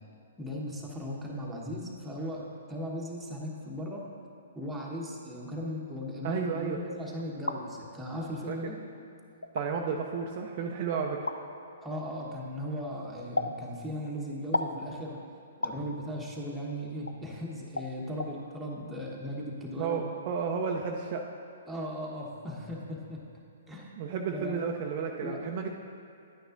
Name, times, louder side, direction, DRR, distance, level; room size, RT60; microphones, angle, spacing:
voice 1, 0.4-4.0 4.5-8.8 11.8-15.2 15.6-20.0 21.7-23.2 23.7-23.9 24.3-24.7 25.2-25.4, equal, 5° right, -4 dB, 1.2 m, -37 dB
voice 2, 6.2-6.8 8.5-8.7 9.5-11.3 19.8-21.2 24.0-25.7, right 6 dB, 40° right, 1 dB, 0.5 m, -32 dB
sound 1, 7.2-7.6 8.5-8.6 9.4-9.7 11.3-11.4 13.4-13.6 14.5-14.8 15.6-15.8 17.1-17.2 17.8-17.9 18.2-18.3, left 2 dB, 85° left, 0.3 m, -32 dB
10.5 x 8.9 x 2.6 m, 2.6 s
figure-of-eight pair, 120°, 0 cm